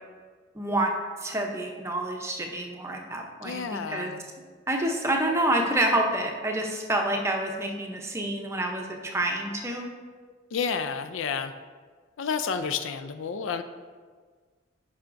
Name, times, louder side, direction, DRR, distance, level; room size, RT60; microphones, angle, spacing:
voice 1, 0.6-0.9 1.2-4.1 4.7-9.9, right 1 dB, 15° right, 2 dB, 0.6 m, -28 dB
voice 2, 3.4-4.3 10.5-11.5 12.2-13.6, left 6 dB, 80° left, 10 dB, 0.4 m, -30 dB
9.4 x 5.7 x 2.6 m, 1.5 s
head